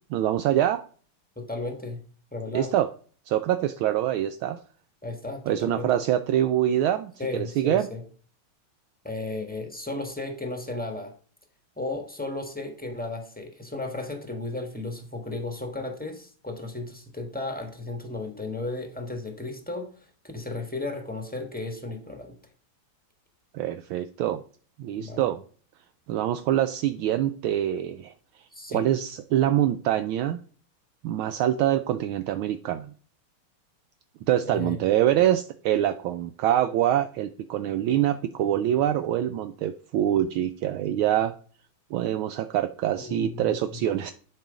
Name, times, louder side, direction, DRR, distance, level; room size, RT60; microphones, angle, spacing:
voice 1, 0.1-0.8 2.5-2.9 3.3-4.6 5.5-7.9 23.5-24.4 24.8-25.4 26.1-28.1 28.7-30.4 31.0-32.9 34.3-41.3 41.9-44.1, right 11 dB, 75° right, 10 dB, 1.4 m, -25 dB
voice 2, 1.4-2.0 2.3-2.7 5.0-5.9 7.2-8.0 9.0-11.1 11.8-19.9 20.3-22.3 25.0-25.3 28.5-28.9 34.4-35.0 43.1-43.8, left 2 dB, 5° left, 5 dB, 1.0 m, -34 dB
11.0 x 4.7 x 5.0 m, 0.43 s
omnidirectional pair, 2.4 m